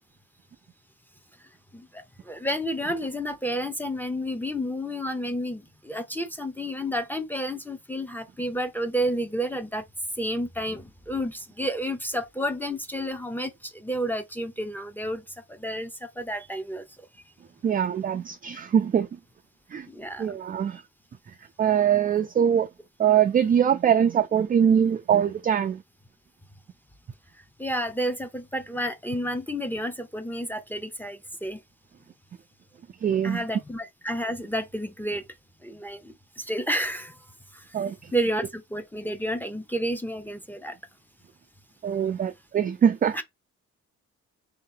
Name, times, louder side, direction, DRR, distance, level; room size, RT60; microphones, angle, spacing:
voice 1, 1.7-9.9 10.2-16.8 19.9-20.4 20.7-20.8 27.6-31.6 33.2-35.2 35.6-37.2 37.5-37.8 38.1-40.8 43.1-43.2, equal, 5° left, 0.7 m, -31 dB
voice 2, 17.6-19.1 19.7-19.9 20.2-20.8 21.6-22.7 23.0-25.8 33.0-33.4 37.7-38.1 41.8-43.2, right 8 dB, 30° right, 0.4 m, -22 dB
3.7 x 2.8 x 3.8 m
cardioid pair, 90°, 30 cm